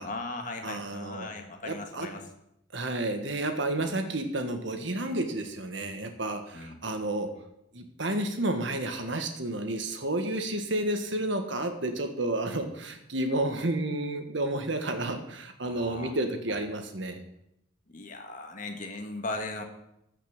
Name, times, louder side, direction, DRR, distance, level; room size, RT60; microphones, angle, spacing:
voice 1, 0.0-2.3 3.8-3.9 6.5-6.8 15.6-16.2 16.5-16.6 17.9-19.6, left 2 dB, 40° left, 5 dB, 1.6 m, -38 dB
voice 2, 0.6-1.3 1.6-2.1 2.7-7.3 7.7-17.2, right 1 dB, 65° right, 6 dB, 1.6 m, -31 dB
15.0 x 5.8 x 7.2 m, 0.80 s
head